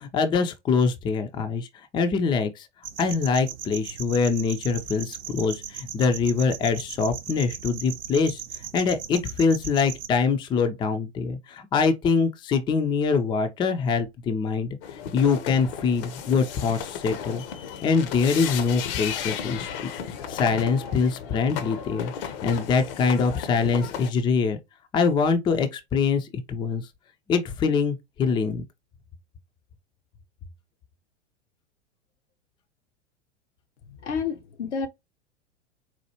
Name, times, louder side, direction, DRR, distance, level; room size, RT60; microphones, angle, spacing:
voice 1, 0.0-1.7 1.9-2.7 3.0-8.4 8.7-14.8 15.1-17.4 17.8-19.7 20.1-22.1 22.4-24.6 24.9-26.9 27.3-28.6, left 5 dB, 15° left, 0.4 m, -24 dB
sound 1, 2.8-10.1, right 10 dB, 70° right, 0.7 m, -38 dB
sound 2, 14.8-24.1, left 8 dB, 50° left, 0.7 m, -34 dB
voice 2, 33.9-34.9, left 6 dB, 80° left, 0.8 m, -30 dB
4.3 x 2.2 x 2.8 m
figure-of-eight pair, 95°, 35 cm